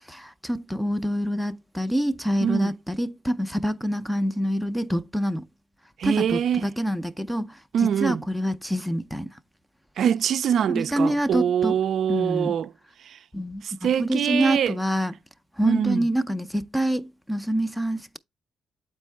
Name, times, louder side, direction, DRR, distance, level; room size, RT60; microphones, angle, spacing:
voice 1, 0.1-5.4 6.0-7.5 7.8-9.3 10.7-11.8 12.1-12.5 13.3-15.1 15.6-18.2, equal, ahead, 0.5 m, -26 dB
voice 2, 2.4-2.7 6.0-6.7 7.7-8.2 10.0-12.7 13.1-13.2 13.6-14.8 15.6-16.1, right 8 dB, 55° right, 0.4 m, -24 dB
8.3 x 4.4 x 3.3 m
cardioid pair, 135°, 0 cm